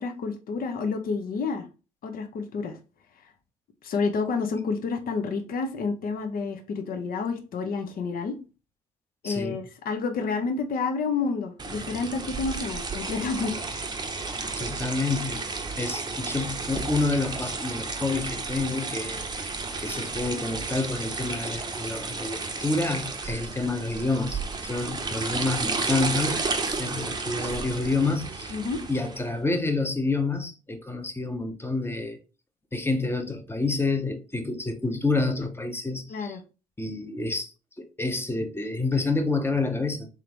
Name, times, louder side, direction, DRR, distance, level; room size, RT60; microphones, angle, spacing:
voice 1, 0.0-1.7 2.0-2.8 3.8-8.4 9.2-13.7 28.5-28.8 36.1-36.4, left 4 dB, 50° left, 0.9 m, -29 dB
voice 2, 9.2-9.6 14.6-15.4 15.8-28.5 28.9-32.2 32.7-36.4 36.8-40.1, left 3 dB, 10° left, 0.9 m, -28 dB
sound 1, 11.6-29.3, right 3 dB, 20° right, 0.8 m, -32 dB
3.6 x 3.4 x 3.1 m
hypercardioid pair, 60°, 19 cm